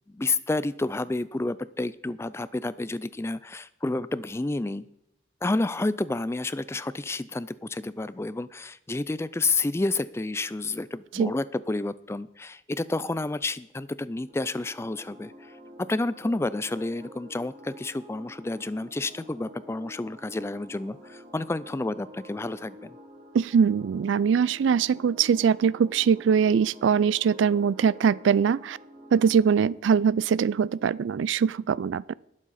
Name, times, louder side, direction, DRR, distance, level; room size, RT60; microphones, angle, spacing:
voice 1, 0.1-4.8 5.4-15.5 15.8-23.0, left 2 dB, 15° left, 0.3 m, -30 dB
sound 1, 14.3-29.7, equal, 40° right, 2.9 m, -49 dB
voice 2, 23.3-28.8 29.1-32.1, right 7 dB, 70° right, 0.3 m, -22 dB
20.5 x 7.4 x 4.1 m
head